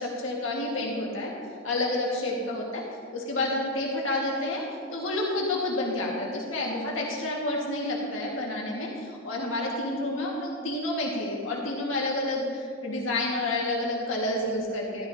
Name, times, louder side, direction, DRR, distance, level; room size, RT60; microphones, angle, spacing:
voice 1, 0.0-1.3 1.6-2.8 3.1-4.6 4.9-15.1, left 2 dB, 75° left, -2 dB, 1.7 m, -29 dB
13.0 x 12.0 x 2.8 m, 2.2 s
head